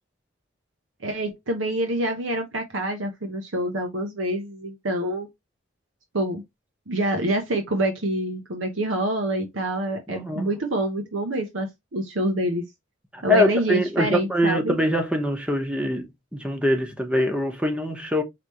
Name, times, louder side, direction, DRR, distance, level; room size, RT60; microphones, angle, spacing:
voice 1, 1.0-5.3 6.1-6.4 6.9-12.6 13.2-14.8, right 1 dB, 80° right, 0.9 m, -26 dB
voice 2, 10.1-10.5 13.1-18.2, left 1 dB, 5° right, 0.9 m, -24 dB
5.0 x 3.4 x 3.0 m
head